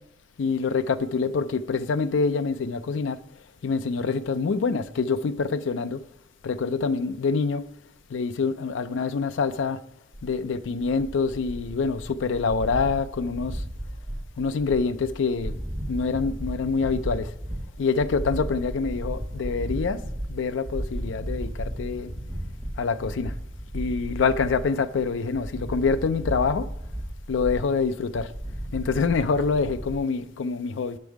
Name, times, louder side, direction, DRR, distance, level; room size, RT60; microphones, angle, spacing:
voice 1, 0.4-3.2 3.6-6.0 6.4-7.6 8.1-9.8 10.2-13.6 14.4-15.6 15.9-17.3 17.8-20.0 20.3-22.1 22.8-23.3 23.7-26.7 27.3-28.3 28.7-31.0, left 4 dB, 75° left, 0.4 m, -26 dB
sound 1, 10.1-30.0, right 1 dB, 15° right, 1.5 m, -34 dB
6.3 x 5.3 x 4.6 m
head